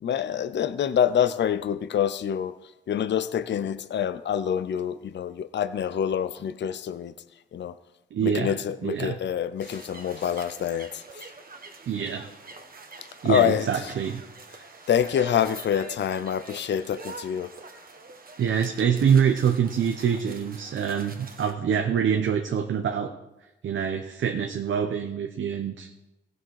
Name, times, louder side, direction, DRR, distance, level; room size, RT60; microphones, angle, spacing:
voice 1, 0.0-2.5 2.9-7.1 7.5-7.7 8.2-11.3 13.2-13.7 14.9-17.5, left 9 dB, 60° left, 0.6 m, -26 dB
voice 2, 8.1-8.5 8.8-9.2 11.9-12.3 13.2-14.2 18.4-23.1 23.6-25.9, right 7 dB, 70° right, 0.9 m, -25 dB
sound 1, 9.6-21.5, right 3 dB, 45° right, 1.5 m, -45 dB
16.0 x 6.3 x 4.8 m
cardioid pair, 55°, 21 cm